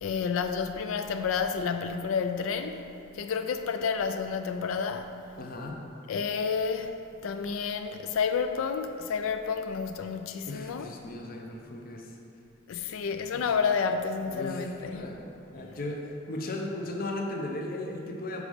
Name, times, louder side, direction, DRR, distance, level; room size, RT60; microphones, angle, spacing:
voice 1, 0.0-2.9 3.1-5.1 6.1-7.0 7.2-10.9 12.7-15.0, left 6 dB, 75° left, 0.3 m, -30 dB
voice 2, 5.4-5.8 10.5-12.1 13.3-13.4 14.3-18.4, left 2 dB, 45° left, 0.7 m, -36 dB
5.2 x 4.9 x 5.0 m
head